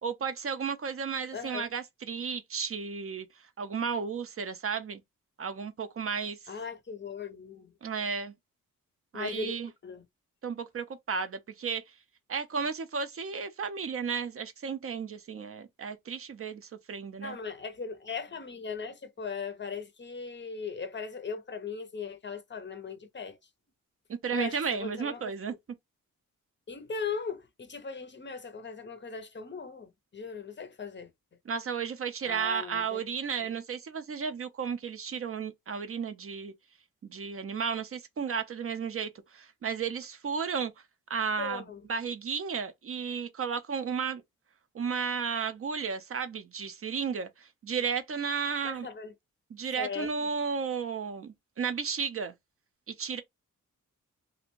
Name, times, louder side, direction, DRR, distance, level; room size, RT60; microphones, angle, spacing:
voice 1, 0.0-3.3 3.6-5.0 5.4-6.4 7.8-8.3 9.1-9.7 10.4-11.8 12.3-17.4 24.1-25.5 31.5-36.5 37.0-40.7 41.1-41.6 41.9-44.2 44.7-48.9 49.5-52.3 52.9-53.2, right 6 dB, 45° right, 0.4 m, -33 dB
voice 2, 1.3-1.7 6.5-7.7 9.1-9.5 9.8-10.0 17.2-23.4 24.3-25.3 26.7-31.1 32.2-33.0 33.4-33.5 41.4-41.8 48.6-49.1 49.8-50.3, left 5 dB, 35° left, 0.5 m, -38 dB
2.5 x 2.1 x 2.9 m
cardioid pair, 80°, 32 cm